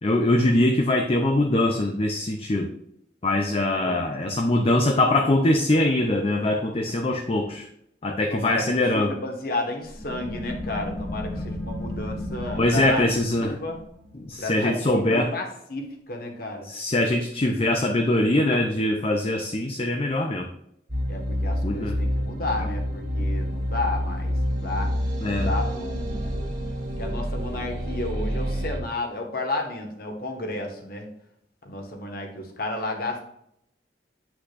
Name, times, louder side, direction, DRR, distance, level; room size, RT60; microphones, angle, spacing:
voice 1, 0.0-2.7 3.2-7.7 8.0-9.1 12.6-13.6 14.1-15.3 16.6-20.5 21.6-22.0 25.2-25.5, left 1 dB, 35° left, 3 dB, 0.6 m, -22 dB
voice 2, 3.6-4.0 8.3-13.0 13.4-13.8 14.4-16.7 21.1-24.9 25.3-26.6 27.0-31.1 31.6-33.2, left 2 dB, 55° left, 2 dB, 1.5 m, -32 dB
sound 1, 9.9-15.2, left 1 dB, 5° left, 1.0 m, -35 dB
sound 2, 20.9-28.8, equal, 55° right, 2.0 m, -28 dB
8.1 x 6.1 x 2.5 m, 0.75 s
head